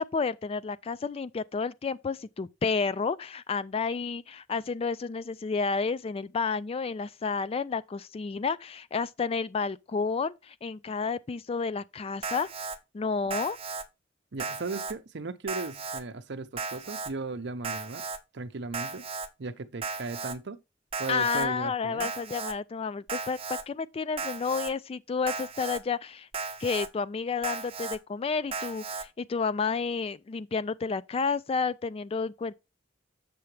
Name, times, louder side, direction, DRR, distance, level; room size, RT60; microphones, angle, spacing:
voice 1, 0.0-12.5 12.9-13.6 21.1-23.4 23.7-26.3 26.6-32.5, left 5 dB, 30° left, 0.3 m, -31 dB
Alarm, 12.2-12.8 13.3-13.8 14.4-14.9 15.5-16.0 16.6-17.1 17.6-18.2 18.7-19.3 19.8-20.4 20.9-21.5 22.0-22.5 23.1-23.6 24.2-24.7 25.3-25.8 26.3-26.9 27.4-28.0 28.5-29.0, right 4 dB, 30° right, 0.9 m, -35 dB
voice 2, 14.3-18.0 18.3-19.0 19.4-20.6 21.0-22.1, right 3 dB, 65° right, 0.7 m, -36 dB
7.6 x 6.9 x 3.2 m
head